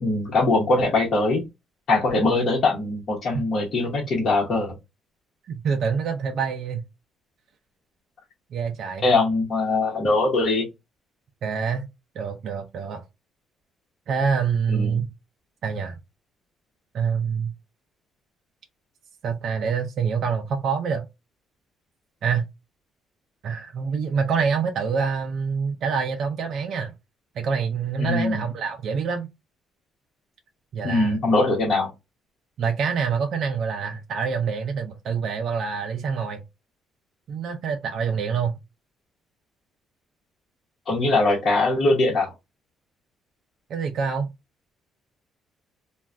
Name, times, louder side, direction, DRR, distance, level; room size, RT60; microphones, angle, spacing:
voice 1, 0.0-1.4 1.9-4.7 9.0-10.7 14.7-15.0 28.0-28.4 30.8-31.9 40.9-42.3, left 2 dB, 45° left, 0.9 m, -22 dB
voice 2, 5.5-6.8 8.5-9.1 11.4-11.9 12.2-13.0 14.1-15.1 15.6-15.9 16.9-17.5 19.2-21.1 22.2-22.4 23.4-26.9 27.4-29.3 30.7-31.2 32.6-36.4 37.3-38.6 43.7-44.3, right 6 dB, 50° right, 0.4 m, -26 dB
2.4 x 2.3 x 3.2 m
cardioid pair, 155°, 0 cm